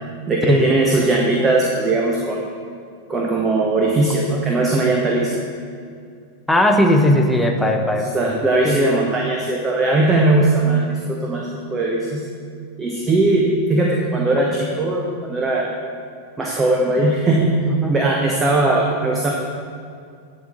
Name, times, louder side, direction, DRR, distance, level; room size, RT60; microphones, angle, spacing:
voice 1, 0.3-2.5 3.1-5.4 8.0-12.2 12.8-15.7 16.4-17.5 17.9-19.3, right 2 dB, 20° right, -1 dB, 1.0 m, -19 dB
voice 2, 6.5-8.1 8.6-8.8 17.8-18.0, left 1 dB, 5° left, 3 dB, 0.9 m, -17 dB
10.5 x 4.5 x 6.4 m, 2.3 s
figure-of-eight pair, 90°, 0 cm